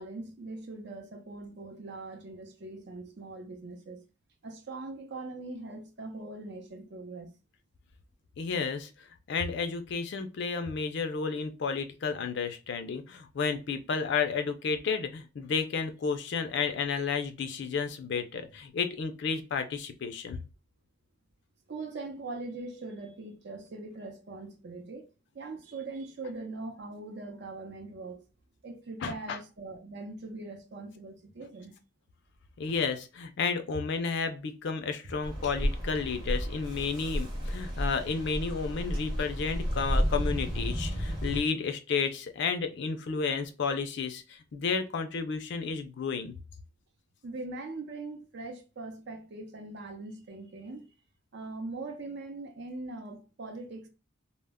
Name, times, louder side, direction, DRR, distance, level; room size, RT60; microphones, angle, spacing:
voice 1, 0.0-4.0 4.4-7.3 21.7-25.1 25.3-28.2 28.6-31.8 35.0-35.1 47.2-50.9 51.3-53.9, right 3 dB, 55° right, 0.5 m, -41 dB
voice 2, 8.4-8.9 9.3-20.4 29.0-29.4 32.6-46.3, left 5 dB, 60° left, 0.4 m, -32 dB
sound 1, 35.2-41.4, equal, 20° right, 0.8 m, -32 dB
2.1 x 2.0 x 3.4 m
head